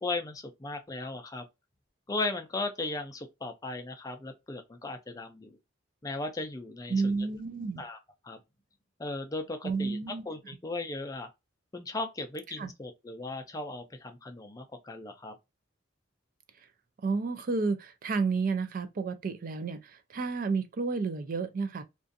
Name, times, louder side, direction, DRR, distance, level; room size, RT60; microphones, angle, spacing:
voice 1, 0.0-1.4 2.1-5.6 6.0-7.3 7.8-8.4 9.0-11.3 11.7-15.4, left 2 dB, 20° left, 0.4 m, -37 dB
voice 2, 6.9-7.8 9.6-10.2 12.6-12.7 17.0-21.8, right 4 dB, 45° right, 0.4 m, -31 dB
2.5 x 2.4 x 2.5 m
head